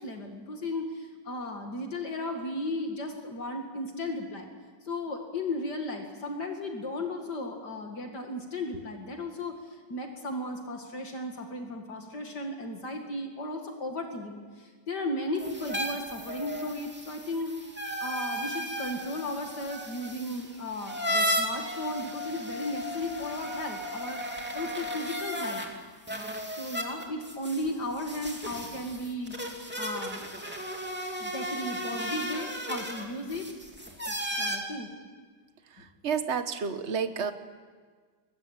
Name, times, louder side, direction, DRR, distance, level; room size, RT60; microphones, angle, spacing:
voice 1, 0.0-4.5 4.8-17.5 18.0-24.2 24.5-25.6 26.6-29.4 29.8-30.3 31.2-33.5 34.0-34.9 35.8-35.9, left 1 dB, 65° left, 3 dB, 2.8 m, -35 dB
sound 1, 15.4-25.7 26.1-34.6, equal, 5° right, 2.9 m, -35 dB
voice 2, 36.0-37.3, right 6 dB, 40° right, 9 dB, 1.6 m, -29 dB
22.5 x 22.5 x 9.0 m, 1.5 s
omnidirectional pair, 1.9 m